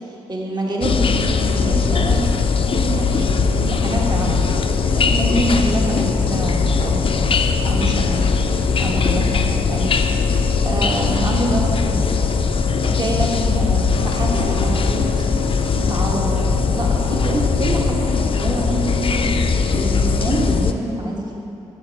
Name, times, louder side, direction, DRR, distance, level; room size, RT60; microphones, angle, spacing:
voice 1, 0.0-4.6 4.9-7.4 7.7-8.3 8.8-12.0 12.8-15.2 15.7-21.3, right 1 dB, 40° right, -2 dB, 1.4 m, -26 dB
sound 1, 0.8-20.7, left 5 dB, 50° left, 0.5 m, -19 dB
sound 2, 1.9-17.5, left 4 dB, 85° left, 0.8 m, -31 dB
8.3 x 6.1 x 4.7 m, 2.6 s
supercardioid pair, 55°, 12 cm